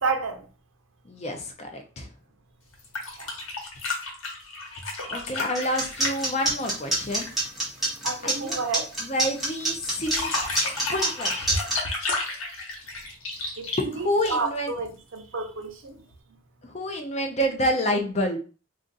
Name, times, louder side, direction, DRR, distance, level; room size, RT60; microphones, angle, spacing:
voice 1, 0.0-0.5 3.2-3.3 8.0-8.9 13.6-13.7 14.0-16.0, right 4 dB, 80° right, 0.7 m, -30 dB
voice 2, 1.1-2.1 5.1-7.3 8.2-8.6 9.0-10.3 10.9-11.6 13.8-14.7 16.6-18.4, equal, 35° left, 0.6 m, -28 dB
sound 1, 2.7-7.4 9.8-14.7 16.1-16.2, left 3 dB, 90° left, 0.9 m, -32 dB
sound 2, 5.5-11.8, right 2 dB, ahead, 1.1 m, -26 dB
2.5 x 2.4 x 3.9 m
head